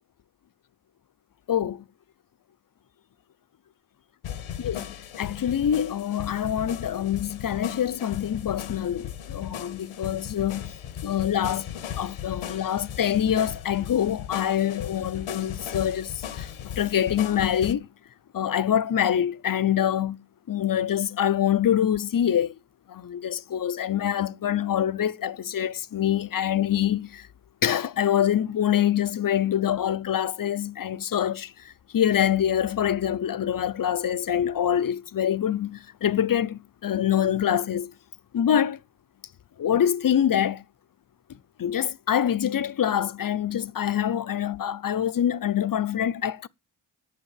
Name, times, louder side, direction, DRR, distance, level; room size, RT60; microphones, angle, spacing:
voice 1, 1.5-1.8 4.6-4.9 5.2-10.7 11.0-11.7 12.0-17.9 18.3-22.5 22.9-27.3 27.6-37.9 38.3-38.8 39.6-40.6 41.3-46.5, left 10 dB, 45° left, 0.7 m, -25 dB
sound 1, 4.2-17.7, left 9 dB, 90° left, 1.1 m, -37 dB
8.8 x 7.2 x 8.5 m
cardioid pair, 50°, 47 cm